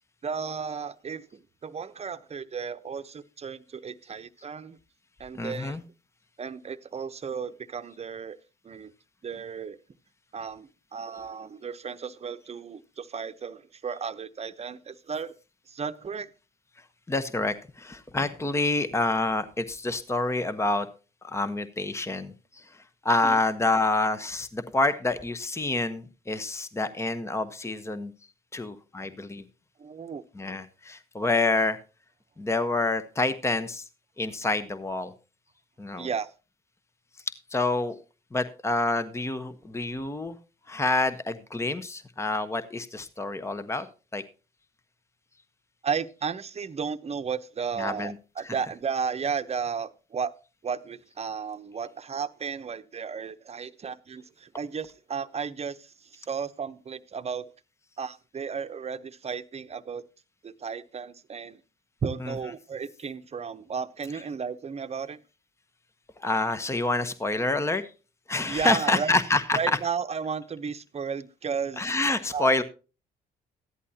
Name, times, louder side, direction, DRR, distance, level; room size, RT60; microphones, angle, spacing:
voice 1, 0.2-4.8 5.2-5.8 6.4-8.4 8.6-8.9 9.2-9.8 10.3-15.3 15.7-16.3 23.2-23.4 29.8-30.2 36.0-36.3 45.8-50.3 50.6-57.5 58.0-60.0 60.4-61.6 62.0-65.2 68.5-69.1 69.5-71.9 72.3-72.6, right 6 dB, 35° right, 0.9 m, -34 dB
voice 2, 5.4-5.8 17.1-20.9 21.2-22.6 23.0-28.1 28.5-29.4 30.4-31.8 32.4-33.8 34.2-35.1 35.8-36.1 37.5-38.0 38.3-40.4 40.7-43.9 44.1-44.2 47.8-48.1 48.4-48.5 62.2-62.3 66.2-67.8 68.3-69.6 71.8-72.6, left 2 dB, 15° left, 1.0 m, -27 dB
14.5 x 11.0 x 2.9 m
supercardioid pair, 70°, 18 cm